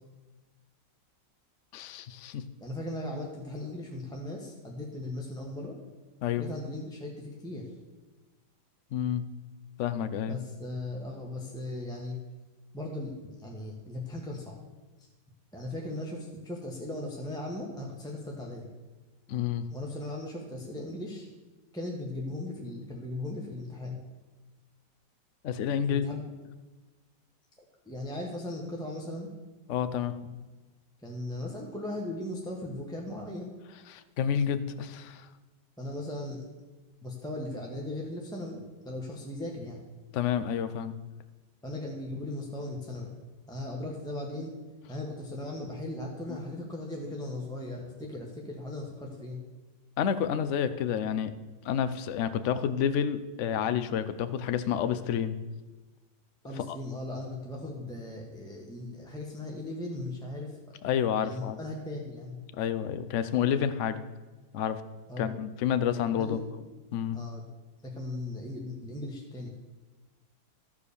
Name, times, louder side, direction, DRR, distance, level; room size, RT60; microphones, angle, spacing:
voice 1, 1.7-2.4 6.2-6.4 8.9-9.2 9.8-10.4 19.3-19.7 25.4-26.0 29.7-30.2 33.9-35.3 40.1-40.9 46.3-46.4 50.0-51.3 51.6-55.4 56.6-56.8 60.8-61.6 62.5-64.0 64.5-64.8 65.2-66.4 66.9-67.2, left 8 dB, 75° left, 13 dB, 0.6 m, -29 dB
voice 2, 2.6-5.7 6.4-7.6 10.3-12.2 12.7-14.6 15.5-18.7 19.7-21.3 21.7-24.0 25.8-26.2 27.8-29.3 31.0-33.5 35.8-36.4 37.0-39.8 41.6-43.2 43.5-44.5 44.9-49.4 56.4-60.6 61.2-62.4 65.1-65.4 66.2-66.4 67.1-67.5 67.8-69.5, left 1 dB, 5° left, -1 dB, 1.0 m, -38 dB
14.5 x 4.8 x 6.8 m, 1.3 s
omnidirectional pair, 1.9 m